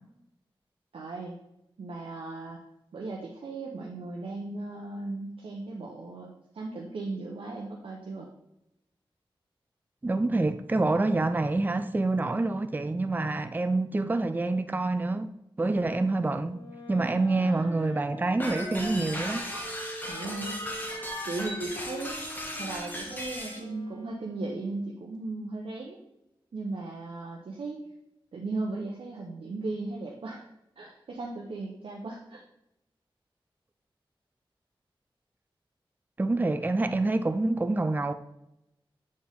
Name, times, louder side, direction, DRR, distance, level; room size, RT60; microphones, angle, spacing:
voice 1, 0.9-1.3 1.8-2.6 2.9-8.3 16.0-16.2 17.3-17.8 20.1-20.9 21.2-22.2 22.6-26.0 26.5-27.9 28.3-30.4 30.8-32.4, right 3 dB, 85° right, 0.8 m, -37 dB
voice 2, 10.0-15.3 15.6-16.6 16.9-19.4 36.2-38.1, right 2 dB, 20° right, 0.4 m, -27 dB
Wind instrument woodwind instrument, 16.5-24.9, left 1 dB, 45° left, 1.4 m, -44 dB
sound 1, 18.4-23.6, equal, 20° left, 1.4 m, -36 dB
7.5 x 4.2 x 3.6 m
wide cardioid pair, 60°, 9 cm